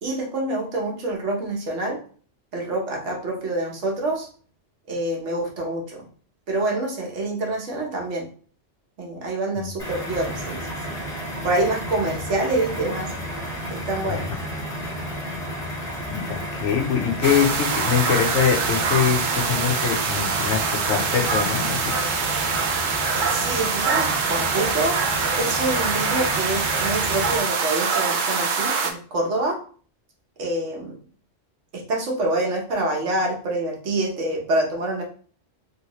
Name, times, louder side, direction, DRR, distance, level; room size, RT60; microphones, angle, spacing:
voice 1, 0.0-2.0 2.5-4.3 4.9-6.1 6.5-8.3 9.0-11.0 11.4-13.1 13.7-14.3 23.1-25.0 25.3-29.6 30.4-31.0 31.7-35.0, right 2 dB, 80° right, 0 dB, 1.3 m, -26 dB
sound 1, 9.8-27.4, equal, 5° left, 1.0 m, -32 dB
voice 2, 16.1-22.0, left 8 dB, 80° left, 3 dB, 1.0 m, -24 dB
sound 2, 17.2-28.9, right 5 dB, 60° right, 0.5 m, -24 dB
3.1 x 2.8 x 2.9 m, 0.43 s
omnidirectional pair, 1.2 m